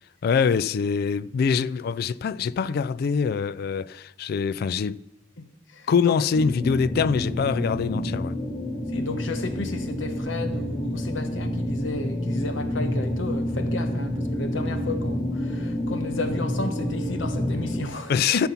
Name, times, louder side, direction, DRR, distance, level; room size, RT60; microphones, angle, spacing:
voice 1, 0.2-5.0 5.9-8.4 18.1-18.5, left 6 dB, 55° left, 0.3 m, -24 dB
voice 2, 5.4-6.1 8.9-18.5, left 2 dB, 85° left, 1.0 m, -33 dB
sound 1, 6.3-17.8, left 1 dB, 25° left, 1.2 m, -28 dB
13.0 x 5.8 x 5.7 m
head